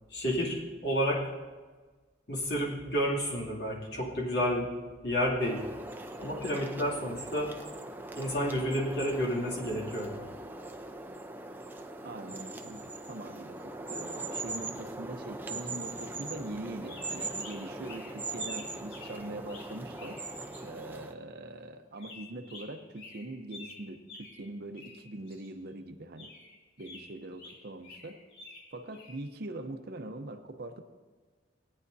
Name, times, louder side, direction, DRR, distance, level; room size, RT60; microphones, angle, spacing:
voice 1, 0.1-1.3 2.3-4.7 5.0-5.7 6.2-7.5 8.1-10.3, equal, 60° left, -3 dB, 2.6 m, -30 dB
sound 1, 5.4-21.1, right 2 dB, 10° right, 0.5 m, -41 dB
voice 2, 12.0-20.2 20.6-26.3 26.8-28.2 28.7-30.9, right 2 dB, 55° right, 7 dB, 0.7 m, -42 dB
sound 2, 16.8-20.7 21.9-24.5 24.7-25.7 26.2-29.2, left 3 dB, 85° left, 3.7 m, -50 dB
18.0 x 9.5 x 2.7 m, 1.4 s
head